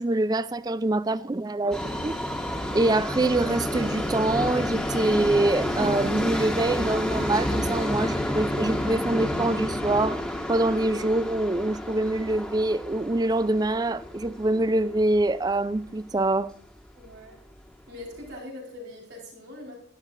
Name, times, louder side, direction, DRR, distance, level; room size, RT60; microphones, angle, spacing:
voice 1, 0.0-2.1 2.7-10.2 10.5-16.5, right 2 dB, 20° right, 0.4 m, -25 dB
Subway metro underground, 1.7-15.8 16.1-16.2 17.1-17.2 17.5-17.6 18.2-18.3, left 1 dB, 5° left, 1.6 m, -30 dB
voice 2, 16.9-17.4 17.9-19.8, left 1 dB, 75° right, 4.4 m, -42 dB
13.0 x 11.5 x 2.5 m
head